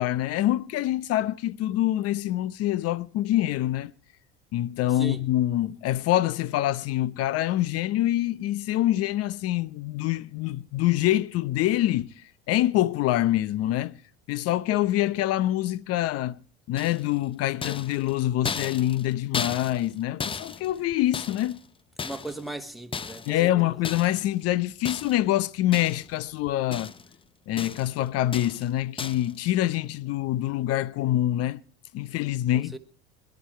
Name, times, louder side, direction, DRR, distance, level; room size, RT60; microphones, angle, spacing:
voice 1, 0.0-3.9 4.5-12.1 12.5-14.0 14.3-16.4 16.7-21.6 23.3-26.9 27.5-31.6 31.9-32.8, left 14 dB, 50° left, 0.8 m, -25 dB
sound 1, 16.8-17.2 17.6-19.9 20.2-21.6 22.0-22.5 22.9-23.4 23.8-24.3 24.9-25.3 25.7-26.2 26.5-27.2 27.6-28.0 28.3-28.7 29.0-29.3, left 5 dB, 20° left, 0.6 m, -35 dB
voice 2, 22.0-23.7 32.5-32.8, right 2 dB, ahead, 1.4 m, -37 dB
21.5 x 10.5 x 4.4 m
hypercardioid pair, 90°, 30 cm